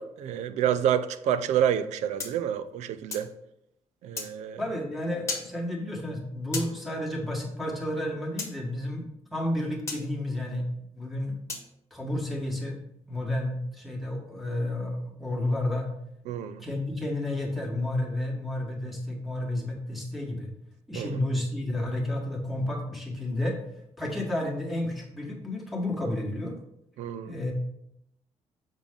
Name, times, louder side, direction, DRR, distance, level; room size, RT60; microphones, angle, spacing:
voice 1, 0.0-3.3 4.0-4.6 16.3-16.6 20.9-21.2 27.0-27.4, right 9 dB, 90° right, 12 dB, 0.5 m, -28 dB
sound 1, 2.2-3.3 4.2-4.3 5.3-5.5 6.5-6.7 8.4-8.5 9.9-10.0 11.5-11.7, left 3 dB, 25° left, 1.3 m, -34 dB
voice 2, 4.6-9.0 9.3-10.6 10.9-11.3 11.9-12.7 13.1-15.9 16.6-20.5 20.9-23.6 24.0-26.6 27.2-27.5, left 1 dB, ahead, -3 dB, 1.5 m, -31 dB
7.1 x 5.4 x 3.7 m, 0.79 s
cardioid pair, 160°, 12 cm